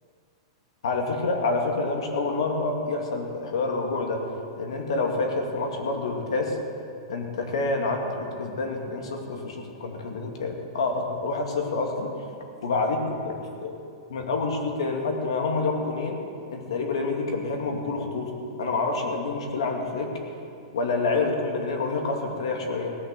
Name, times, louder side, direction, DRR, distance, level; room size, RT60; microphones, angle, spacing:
voice 1, 0.8-4.2 4.6-6.6 7.1-12.1 12.6-13.7 14.1-16.2 16.5-18.3 18.6-20.1 20.7-23.0, left 3 dB, 85° left, 2 dB, 2.2 m, -27 dB
17.5 x 6.6 x 7.6 m, 2.5 s
supercardioid pair, 180°, 3 cm